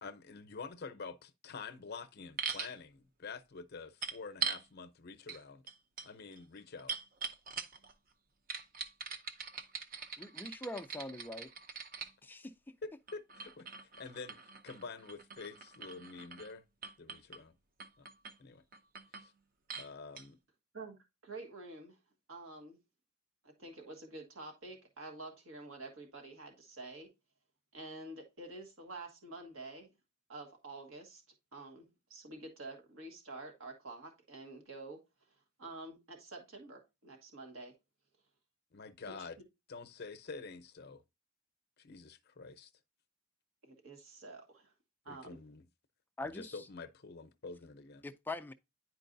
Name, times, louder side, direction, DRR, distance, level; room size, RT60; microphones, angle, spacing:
voice 1, 0.0-5.6 6.0-6.9 12.8-13.7 14.0-14.4 14.6-16.6 17.0-17.5 18.0-18.1 18.4-18.6 19.2-19.3 19.8-20.4 38.7-39.4 39.7-41.0 41.8-42.7 45.1-45.7 46.2-48.0, left 4 dB, 50° left, 0.6 m, -47 dB
sound 1, 2.4-2.7 4.0-4.7 5.3-5.4 5.7-7.9 8.5-12.1 13.1-16.5 16.8-17.4 17.8-18.3 18.7-19.3 19.7-19.9 20.2-20.3, right 6 dB, 45° right, 0.7 m, -42 dB
voice 2, 10.2-11.5 12.2-12.8 46.2-46.6 48.0-48.5, left 2 dB, 10° left, 0.3 m, -43 dB
voice 3, 21.2-22.0 22.3-22.8 23.4-27.1 27.7-29.9 30.3-31.2 31.5-35.0 35.6-37.7 39.1-39.3 43.6-44.7 45.0-45.4, right 2 dB, 80° right, 1.5 m, -48 dB
9.9 x 4.5 x 2.6 m
head